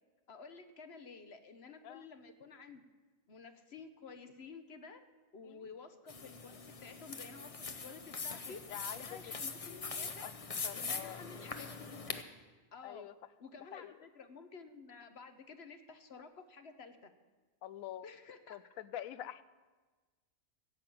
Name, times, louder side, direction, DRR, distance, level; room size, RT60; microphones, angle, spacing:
voice 1, 0.3-2.8 3.3-5.0 5.3-8.6 8.9-10.3 10.7-12.2 12.7-13.1 13.4-17.1 18.0-18.6, left 4 dB, 55° left, 8 dB, 1.1 m, -52 dB
sound 1, 6.1-12.2, left 4 dB, 35° left, 0.7 m, -42 dB
voice 2, 8.5-9.3 9.6-10.3 10.6-11.2 12.8-13.1 13.6-14.0 17.6-18.1 18.5-19.4, left 12 dB, 90° left, 15 dB, 1.0 m, -47 dB
15.0 x 7.6 x 8.6 m, 1.3 s
omnidirectional pair, 1.4 m